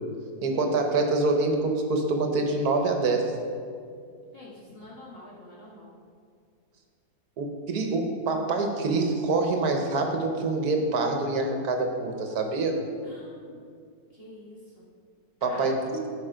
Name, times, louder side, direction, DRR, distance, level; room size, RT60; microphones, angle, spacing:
voice 1, 0.4-3.3 7.4-12.8 15.4-15.8, right 3 dB, 70° right, 4 dB, 1.5 m, -25 dB
voice 2, 4.3-5.9 13.0-13.6 14.1-14.9 15.4-15.7, left 1 dB, 40° left, -8 dB, 1.7 m, -47 dB
13.5 x 5.2 x 5.1 m, 2.2 s
omnidirectional pair, 1.7 m